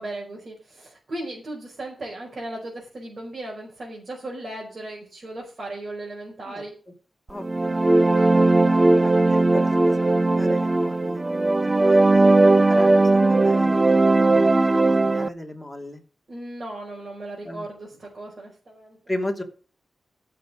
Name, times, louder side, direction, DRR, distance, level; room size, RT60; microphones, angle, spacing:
voice 1, 0.0-6.8 8.1-8.3 16.3-19.0, right 1 dB, 45° right, -2 dB, 5.1 m, -36 dB
voice 2, 7.3-7.8 9.0-9.7 10.0-11.2 11.6-14.0 14.3-16.0 17.4-17.7 19.1-19.4, left 1 dB, 5° left, 2 dB, 2.8 m, -36 dB
sound 1, 7.4-15.3, right 2 dB, 25° right, 0.6 m, -18 dB
14.5 x 6.9 x 6.4 m, 0.40 s
wide cardioid pair, 115°, 0 cm